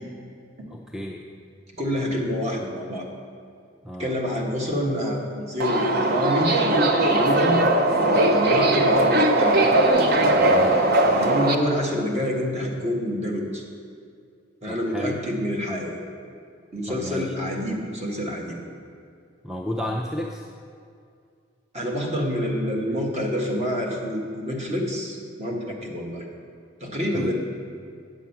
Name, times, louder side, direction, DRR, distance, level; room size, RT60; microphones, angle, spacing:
voice 1, 0.7-1.3 3.8-4.2 10.5-10.8 14.7-15.2 16.9-17.3 19.4-20.5 27.1-27.3, equal, 5° right, 0 dB, 0.4 m, -32 dB
voice 2, 1.8-3.1 4.0-9.6 11.1-13.6 14.6-16.0 16.7-18.6 21.7-26.3 26.8-27.3, equal, 35° right, 0 dB, 1.4 m, -27 dB
Subway metro underground, 5.6-11.5, right 1 dB, 50° right, 0.7 m, -19 dB
9.1 x 7.2 x 5.8 m, 2.3 s
head